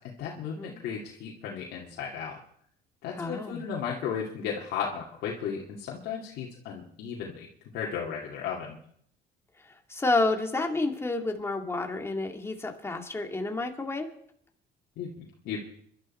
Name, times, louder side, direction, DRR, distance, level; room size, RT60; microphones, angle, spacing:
voice 1, 0.2-2.4 3.0-7.5 7.7-8.8 15.0-15.6, left 7 dB, 80° left, -3 dB, 2.4 m, -35 dB
voice 2, 3.2-3.6 9.9-14.1, left 2 dB, 15° left, 4 dB, 2.3 m, -29 dB
27.0 x 12.0 x 4.4 m, 0.66 s
cardioid pair, 110°, 17 cm